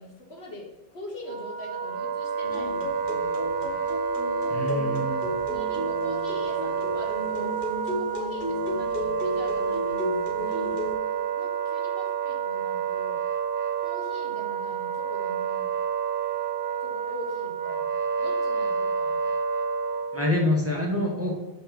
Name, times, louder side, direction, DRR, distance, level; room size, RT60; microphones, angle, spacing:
voice 1, 0.0-3.8 4.6-5.1 5.5-10.8 11.4-13.3 13.8-15.7 16.8-17.9 18.2-19.2, left 1 dB, 85° left, -1 dB, 1.6 m, -43 dB
Wind instrument woodwind instrument, 1.2-20.4, right 6 dB, 65° right, 0.7 m, -29 dB
sound 1, 2.4-10.9, left 1 dB, 55° left, 1.1 m, -33 dB
voice 2, 4.5-5.3 20.1-21.3, left 1 dB, 15° right, -2 dB, 1.1 m, -26 dB
5.4 x 3.6 x 5.8 m, 1.1 s
omnidirectional pair, 1.0 m